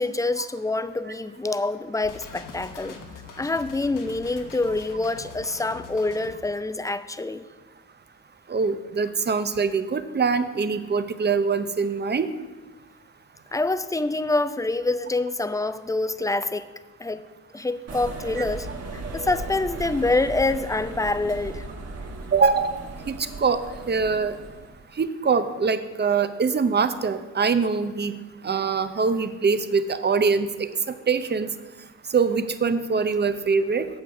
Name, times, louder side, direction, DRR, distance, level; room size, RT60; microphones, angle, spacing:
voice 1, 0.0-3.0 3.4-7.4 13.5-16.7 17.0-17.2 17.5-18.7 18.9-21.6, left 2 dB, 10° left, 12 dB, 0.5 m, -26 dB
sound 1, 2.0-6.3, left 4 dB, 90° left, 1.2 m, -43 dB
voice 2, 8.5-12.3 22.3-22.8 23.1-23.6 23.9-24.3 25.0-28.2 28.4-30.5 31.1-31.5 32.1-33.9, right 5 dB, 35° right, 11 dB, 0.7 m, -23 dB
sound 2, 17.9-24.8, right 3 dB, 55° right, 1.3 m, -37 dB
8.7 x 7.1 x 5.9 m, 1.2 s
cardioid pair, 75°, 31 cm